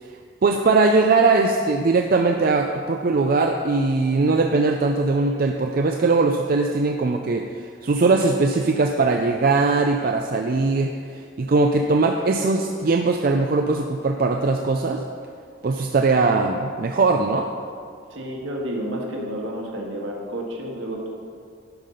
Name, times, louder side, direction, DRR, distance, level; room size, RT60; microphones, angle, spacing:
voice 1, 0.4-7.5 7.8-10.9 11.4-15.0 15.6-17.5, right 3 dB, 45° right, 3 dB, 0.4 m, -20 dB
voice 2, 18.1-21.1, equal, 70° right, -1 dB, 1.6 m, -30 dB
11.5 x 5.2 x 5.8 m, 2.2 s
head